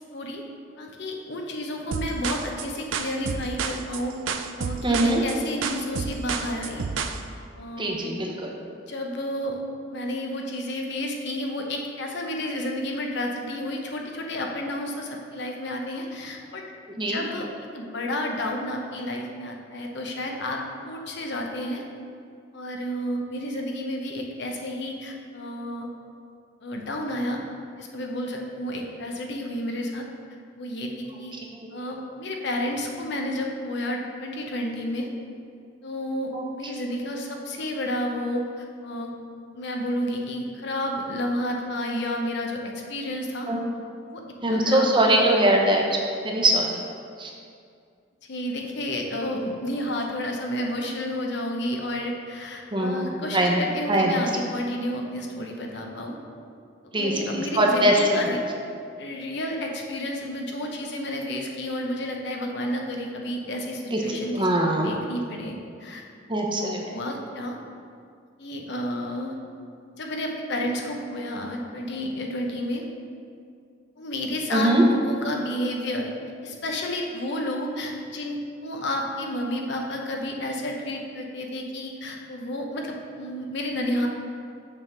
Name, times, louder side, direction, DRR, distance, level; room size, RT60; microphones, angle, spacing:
voice 1, 0.1-0.4 0.8-4.2 4.6-6.9 7.6-8.1 8.8-9.6 9.9-16.6 16.9-17.5 17.7-21.8 22.5-25.9 26.6-27.4 27.8-30.0 30.6-31.3 31.7-35.1 35.8-39.2 39.5-42.6 42.9-43.5 44.1-44.2 44.5-45.2 48.2-56.2 57.0-58.4 59.0-65.5 65.8-66.0 66.6-67.6 68.4-69.3 70.0-72.8 74.0-76.1 76.4-84.1, left 1 dB, 65° left, 1 dB, 0.8 m, -31 dB
Drums with Shuffle, 1.9-7.2, right 5 dB, 85° right, 0.4 m, -30 dB
voice 2, 4.8-5.2 7.8-8.5 17.0-17.2 36.3-36.4 43.5-43.6 44.4-46.0 46.2-46.8 47.2-47.3 52.7-53.1 53.3-53.6 53.9-54.2 56.9-58.3 63.9-64.0 64.3-64.9 66.3-66.8 74.5-74.8, right 1 dB, 25° right, 0 dB, 0.8 m, -22 dB
6.7 x 3.7 x 6.1 m, 2.3 s
head